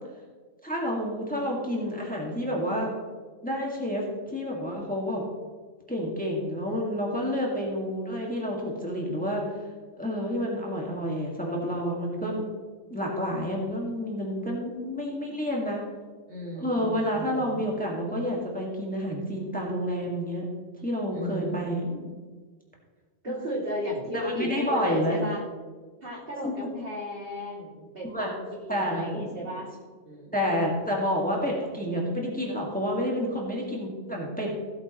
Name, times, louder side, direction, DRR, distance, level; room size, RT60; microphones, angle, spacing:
voice 1, 0.6-2.9 3.4-5.2 5.9-9.4 10.0-12.4 12.9-15.8 16.6-20.5 20.8-21.9 24.1-25.2 26.4-26.5 28.0-28.3 28.7-29.6 30.3-34.5, equal, 5° left, -2 dB, 2.0 m, -29 dB
voice 2, 16.3-17.6 21.1-22.1 23.2-25.4 26.0-28.3 28.6-29.7 30.0-30.4, equal, 55° right, -4 dB, 2.9 m, -35 dB
16.5 x 8.0 x 3.1 m, 1.5 s
omnidirectional pair, 1.2 m